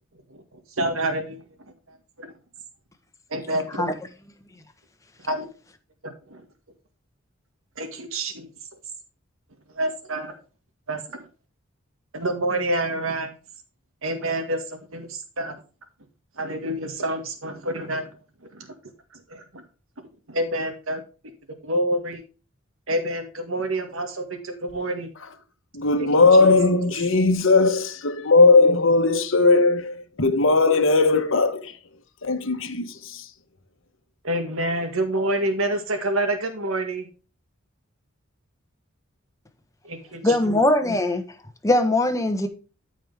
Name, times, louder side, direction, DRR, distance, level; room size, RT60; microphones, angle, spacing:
voice 1, 0.8-1.5 2.2-2.3 3.3-4.0 5.2-5.5 6.0-6.4 7.8-8.5 9.7-10.3 10.9-11.2 12.1-13.3 14.0-15.6 16.4-18.1 18.6-18.7 19.3-19.6 20.3-21.0 21.6-22.2 22.9-25.1 26.0-26.1 26.4-26.5 34.2-37.1 39.8-40.6, right 1 dB, 85° right, 1.9 m, -27 dB
voice 2, 25.7-31.7 32.2-33.3, left 3 dB, 70° left, 1.2 m, -18 dB
voice 3, 40.2-41.2 41.6-42.5, left 1 dB, 15° left, 1.2 m, -20 dB
13.0 x 5.0 x 3.5 m
head